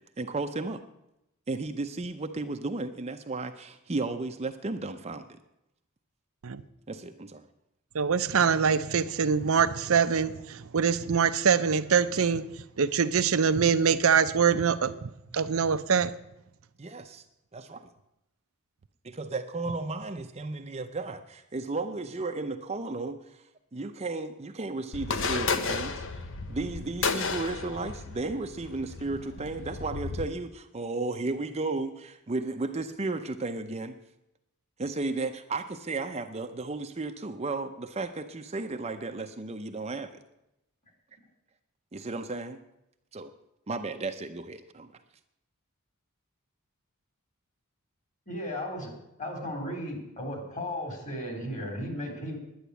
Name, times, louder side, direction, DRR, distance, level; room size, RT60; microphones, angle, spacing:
voice 1, 0.2-0.8 1.5-5.3 6.9-7.5 16.8-17.2 17.5-17.8 19.0-23.4 23.7-26.2 26.5-34.0 34.8-40.2 41.9-42.6 43.1-43.3 43.7-44.9, right 3 dB, 30° right, 7 dB, 0.6 m, -34 dB
voice 2, 7.9-12.4 12.8-16.1, right 6 dB, 70° right, 12 dB, 0.6 m, -24 dB
sound 1, 24.9-30.3, left 4 dB, 60° left, 1.0 m, -33 dB
voice 3, 48.3-48.9 49.2-52.4, left 1 dB, 35° left, 3 dB, 3.5 m, -35 dB
10.0 x 10.0 x 8.2 m, 0.85 s
head